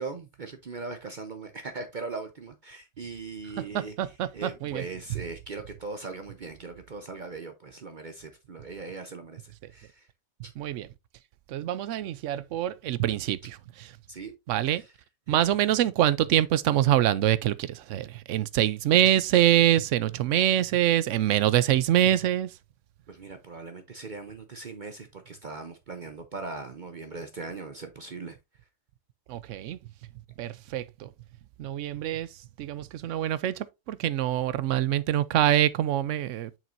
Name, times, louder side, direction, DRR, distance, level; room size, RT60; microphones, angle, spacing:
voice 1, 0.0-3.9 4.3-10.1 14.1-14.3 14.8-14.9 15.3-15.5 23.1-28.4, right 4 dB, 45° right, 0.8 m, -39 dB
voice 2, 3.6-4.8 10.6-10.9 11.5-13.9 14.5-14.8 15.3-22.5 29.3-29.8 30.4-31.1 31.6-32.3 32.6-36.6, right 12 dB, 90° right, 0.9 m, -25 dB
7.4 x 5.9 x 2.5 m
omnidirectional pair, 1.2 m